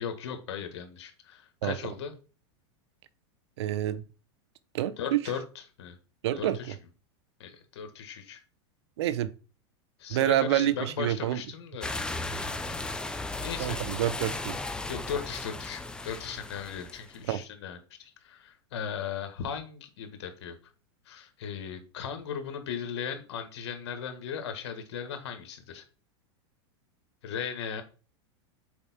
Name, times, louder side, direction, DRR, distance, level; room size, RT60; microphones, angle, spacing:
voice 1, 0.0-2.1 5.0-5.4 5.8-5.9 6.4-6.7 7.4-8.4 10.0-11.9 12.4-12.8 13.4-13.8 14.9-20.6 21.0-25.8 27.2-27.8, left 7 dB, 75° left, 1.7 m, -37 dB
voice 2, 1.6-1.9 3.6-4.0 4.7-5.2 6.2-6.7 9.0-9.3 10.1-11.4 13.6-14.6 17.3-17.4, right 12 dB, 75° right, 0.7 m, -28 dB
sound 1, 11.8-17.2, left 2 dB, 5° left, 0.6 m, -36 dB
7.1 x 4.5 x 4.3 m
supercardioid pair, 135°, 14 cm